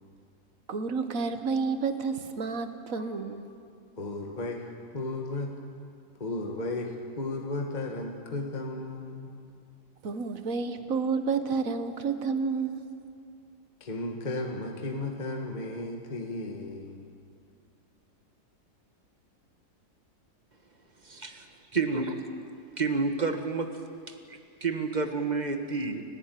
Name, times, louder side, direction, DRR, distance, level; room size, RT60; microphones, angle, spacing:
voice 1, 0.7-3.5 10.0-12.8, right 5 dB, 60° right, 9 dB, 1.6 m, -30 dB
voice 2, 4.0-5.5 6.2-9.4 13.8-17.1, left 2 dB, 30° left, 2 dB, 1.6 m, -34 dB
voice 3, 21.0-21.4 21.7-22.1 22.8-23.7 24.1-26.0, right 4 dB, 30° right, 6 dB, 1.5 m, -29 dB
30.0 x 11.5 x 9.2 m, 2.3 s
omnidirectional pair, 1.7 m